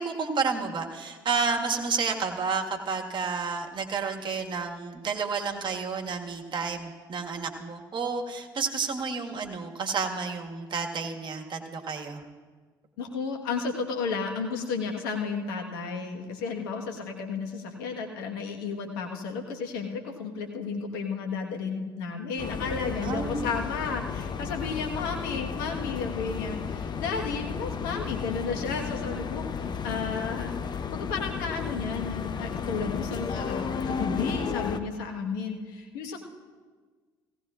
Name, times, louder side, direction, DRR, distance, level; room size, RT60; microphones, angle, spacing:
voice 1, 0.0-12.2 23.0-23.5, right 5 dB, 40° right, 3 dB, 1.8 m, -30 dB
voice 2, 13.0-30.5 30.9-36.2, left 5 dB, 75° left, 3 dB, 1.5 m, -33 dB
sound 1, 22.4-34.8, left 6 dB, 40° left, 0.9 m, -33 dB
17.5 x 17.0 x 2.5 m, 1.5 s
figure-of-eight pair, 55°, 12 cm